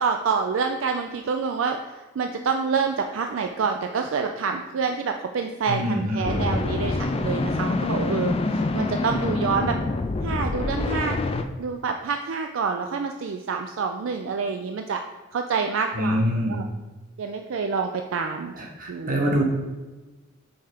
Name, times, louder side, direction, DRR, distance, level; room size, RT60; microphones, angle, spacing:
voice 1, 0.0-9.8 10.2-11.2 11.6-15.0 15.3-16.2 16.5-16.6 17.2-18.5 18.9-19.3, right 5 dB, 65° right, 5 dB, 0.4 m, -27 dB
voice 2, 5.7-6.5 15.9-16.6 18.5-19.4, equal, 40° right, -1 dB, 1.4 m, -25 dB
sound 1, 6.2-11.4, left 2 dB, 30° left, 0.3 m, -26 dB
5.7 x 4.2 x 4.9 m, 1.2 s
head